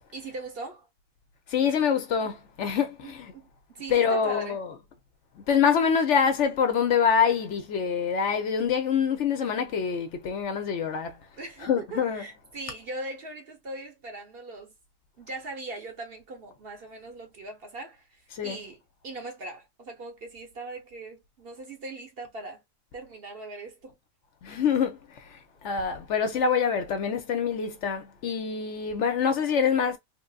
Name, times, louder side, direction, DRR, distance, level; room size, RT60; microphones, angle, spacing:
voice 1, 0.1-0.9 3.0-4.6 11.4-14.7 15.2-22.6 22.9-23.9, right 2 dB, 50° right, 0.9 m, -40 dB
voice 2, 1.5-3.3 3.9-4.7 5.4-11.2 11.6-12.3 18.3-18.6 24.4-30.0, left 7 dB, 65° left, 0.9 m, -25 dB
3.3 x 2.5 x 2.2 m
omnidirectional pair, 1.4 m